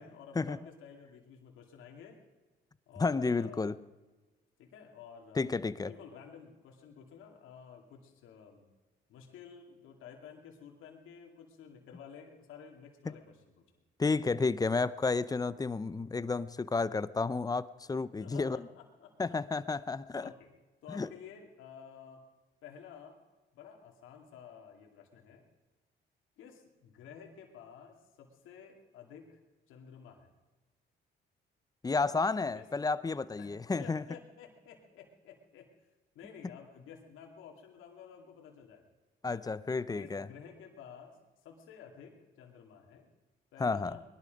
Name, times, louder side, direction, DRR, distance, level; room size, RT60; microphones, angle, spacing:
voice 1, 0.0-2.2 2.9-3.8 4.6-5.6 5.8-8.7 9.1-13.6 18.2-19.4 20.2-20.5 20.8-22.2 22.6-23.2 23.5-25.4 26.4-29.4 29.7-30.3 32.5-32.7 33.4-35.7 36.1-38.8 40.0-41.2 41.4-43.1 43.5-44.0, left 7 dB, 85° left, 2.4 m, -52 dB
voice 2, 3.0-3.8 5.3-5.9 14.0-18.6 19.2-20.3 20.9-21.1 31.8-34.0 39.2-40.3 43.6-43.9, left 4 dB, 20° left, 0.6 m, -31 dB
20.0 x 12.0 x 5.2 m
cardioid pair, 90°, 20 cm